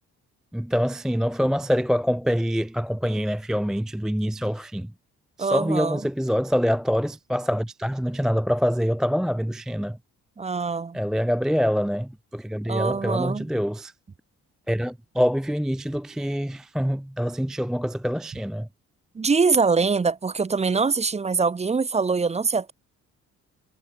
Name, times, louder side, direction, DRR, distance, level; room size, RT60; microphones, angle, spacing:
voice 1, 0.5-4.9 5.4-10.0 10.9-13.9 14.7-18.7, equal, ahead, 0.4 m, -25 dB
voice 2, 5.4-6.0 10.4-11.0 12.7-13.5 19.1-22.7, right 4 dB, 20° right, 0.7 m, -23 dB
cardioid pair, 90°, 30 cm